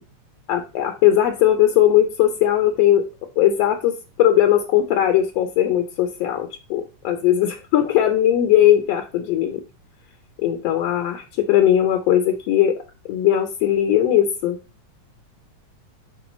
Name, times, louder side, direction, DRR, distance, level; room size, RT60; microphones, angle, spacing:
voice 1, 0.5-3.0 3.4-9.6 10.4-12.8 13.1-14.6, left 11 dB, 75° left, 7 dB, 1.6 m, -19 dB
10.5 x 3.8 x 5.1 m, 0.31 s
omnidirectional pair, 3.7 m